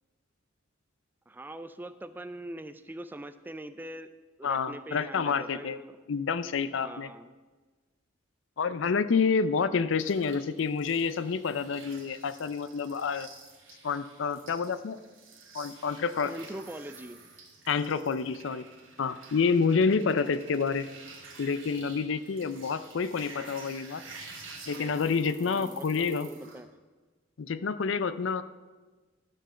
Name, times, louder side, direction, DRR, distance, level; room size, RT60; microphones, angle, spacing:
voice 1, 1.3-4.1 4.4-6.0 6.8-7.3 16.2-17.2 25.4-26.7, right 1 dB, 10° right, 11 dB, 0.3 m, -42 dB
voice 2, 4.4-5.8 6.1-7.1 8.6-13.3 13.8-15.0 15.5-16.3 17.7-18.6 19.0-20.9 21.4-24.0 24.7-26.3 27.4-28.4, left 5 dB, 65° left, 14 dB, 0.5 m, -28 dB
sound 1, 10.0-26.6, right 4 dB, 70° right, 2.0 m, -50 dB
12.0 x 4.6 x 7.3 m, 1.3 s
head